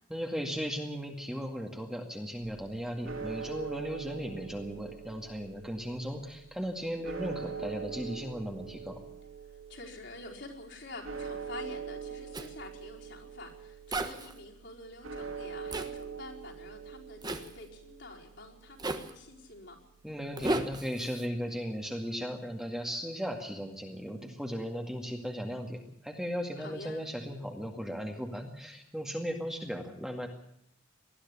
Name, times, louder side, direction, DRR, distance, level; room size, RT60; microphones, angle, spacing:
voice 1, 0.1-9.0 20.0-30.3, equal, 5° right, 2 dB, 2.1 m, -37 dB
sound 1, 2.4-20.8, right 6 dB, 90° right, 3.4 m, -44 dB
voice 2, 9.5-19.8 26.6-27.1, left 2 dB, 60° left, -2 dB, 4.8 m, -48 dB
Zipper (clothing), 12.3-12.5 13.9-14.3 15.7-15.9 17.2-17.5 18.8-19.1 20.4-21.3, right 2 dB, 20° right, 1.3 m, -34 dB
20.0 x 13.5 x 10.0 m, 0.74 s
head